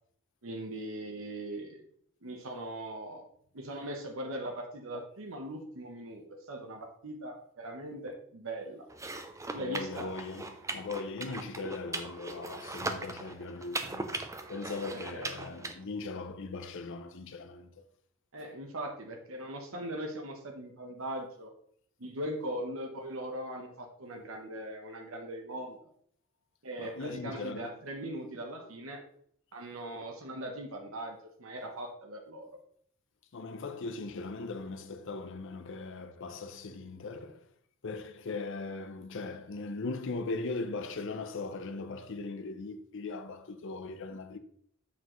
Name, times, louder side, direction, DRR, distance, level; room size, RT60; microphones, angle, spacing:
voice 1, 0.4-1.8 2.2-3.2 3.5-8.9 9.5-10.1 15.1-15.3 18.3-21.5 22.0-25.8 26.6-29.0 29.5-32.5, right 1 dB, 70° right, 1.0 m, -40 dB
sound 1, 8.9-15.7, right 2 dB, 15° right, 0.5 m, -39 dB
voice 2, 9.5-14.1 14.5-17.7 26.8-27.7 33.3-37.4 37.8-44.4, left 3 dB, 65° left, 0.6 m, -39 dB
7.3 x 6.2 x 3.1 m
head